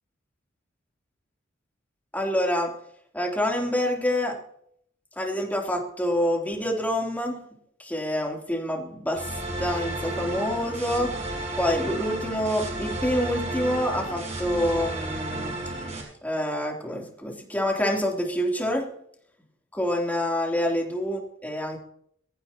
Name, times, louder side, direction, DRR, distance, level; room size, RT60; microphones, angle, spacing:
voice 1, 2.1-2.7 3.1-4.3 5.2-7.4 7.8-9.3 9.6-11.1 11.6-15.5 16.2-18.9 19.7-21.8, equal, 10° left, 0 dB, 3.3 m, -27 dB
sound 1, 9.2-16.0, right 2 dB, 35° right, 6.3 m, -32 dB
23.5 x 14.5 x 3.0 m, 0.65 s
head